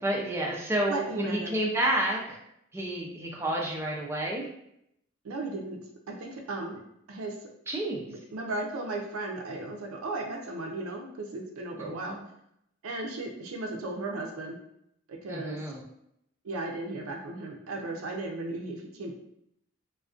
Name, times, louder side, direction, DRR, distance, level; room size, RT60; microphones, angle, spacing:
voice 1, 0.0-2.4 2.7-4.5 7.7-8.0 11.8-12.2 15.3-15.8, right 1 dB, 10° right, -1 dB, 0.3 m, -30 dB
voice 2, 0.9-1.6 5.2-5.8 6.1-6.8 7.1-7.3 8.1-12.2 12.8-14.6 15.1-15.6 16.4-19.1, right 2 dB, 80° right, 2 dB, 0.5 m, -35 dB
2.4 x 2.1 x 2.4 m, 0.76 s
head